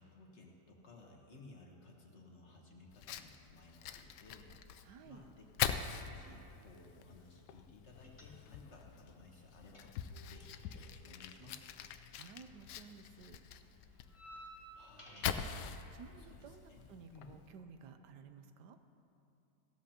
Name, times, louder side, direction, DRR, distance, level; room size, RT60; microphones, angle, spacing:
voice 1, 0.0-4.6 5.0-9.9 10.3-11.7 14.7-15.3 16.2-17.3, left 2 dB, 45° left, 0 dB, 1.4 m, -58 dB
Fire, 2.9-17.5, left 9 dB, 85° left, 1.2 m, -44 dB
voice 2, 4.8-5.2 12.1-13.4 15.9-18.8, right 6 dB, 80° right, 8 dB, 1.3 m, -55 dB
sound 1, 8.0-8.8 9.1-12.5 12.7-15.6, right 1 dB, 20° left, 1.3 m, -57 dB
16.5 x 13.0 x 2.9 m, 2.7 s
omnidirectional pair, 1.8 m